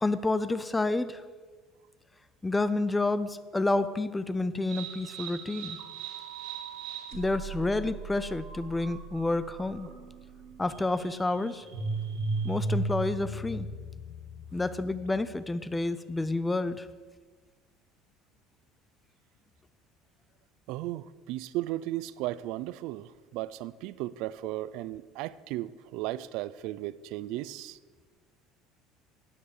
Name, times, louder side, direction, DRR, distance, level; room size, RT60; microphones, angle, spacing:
voice 1, 0.0-1.2 2.4-5.8 7.1-9.9 10.6-11.6 12.4-13.7 14.5-16.9, left 2 dB, 10° left, 14 dB, 0.4 m, -29 dB
sound 1, 4.7-15.3, right 3 dB, 85° right, 2.4 m, -37 dB
voice 2, 20.7-27.8, right 15 dB, 55° right, 18 dB, 0.5 m, -35 dB
12.5 x 9.9 x 6.7 m, 1.5 s
cardioid pair, 180°, 0 cm